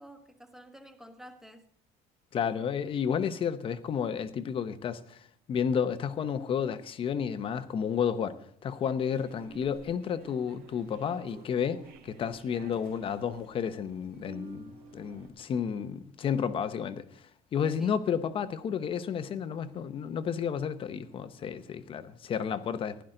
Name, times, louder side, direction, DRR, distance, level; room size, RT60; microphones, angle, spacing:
voice 1, 0.0-1.7 17.6-18.0, equal, ahead, 1.2 m, -50 dB
voice 2, 2.3-23.0, left 7 dB, 30° left, 0.9 m, -32 dB
sound 1, 9.0-15.3, right 3 dB, 65° right, 2.8 m, -51 dB
16.0 x 11.5 x 3.9 m
cardioid pair, 175°, 17 cm